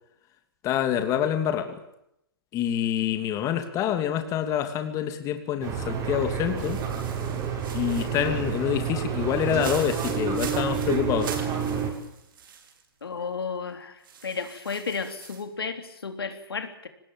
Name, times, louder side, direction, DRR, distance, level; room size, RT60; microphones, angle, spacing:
voice 1, 0.6-1.7 2.5-6.8 7.7-11.3, left 9 dB, 25° left, 7 dB, 2.7 m, -26 dB
sound 1, 5.6-11.9, right 7 dB, 25° right, 6.2 m, -29 dB
sound 2, 6.6-12.8 13.2-13.3 14.0-15.4, right 7 dB, 60° right, 5.7 m, -42 dB
voice 2, 13.0-14.0 14.2-16.9, left 5 dB, 80° left, 7 dB, 3.5 m, -33 dB
23.5 x 20.0 x 8.9 m, 0.81 s
hypercardioid pair, 130°, 12 cm